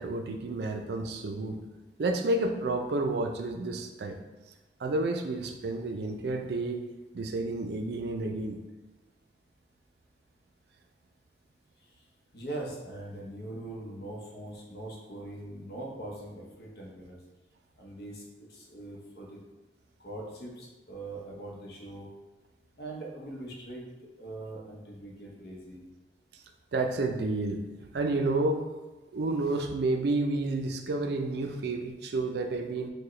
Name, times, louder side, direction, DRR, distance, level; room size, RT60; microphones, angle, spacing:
voice 1, 0.0-1.6 2.0-4.2 4.8-6.8 7.1-8.6 26.7-28.6 29.1-32.9, right 2 dB, 70° right, 5 dB, 0.4 m, -30 dB
voice 2, 12.3-17.2 17.8-19.4 20.0-22.1 22.8-23.8 24.2-25.8, right 1 dB, 65° left, -2 dB, 0.8 m, -41 dB
4.6 x 2.2 x 3.1 m, 1.1 s
head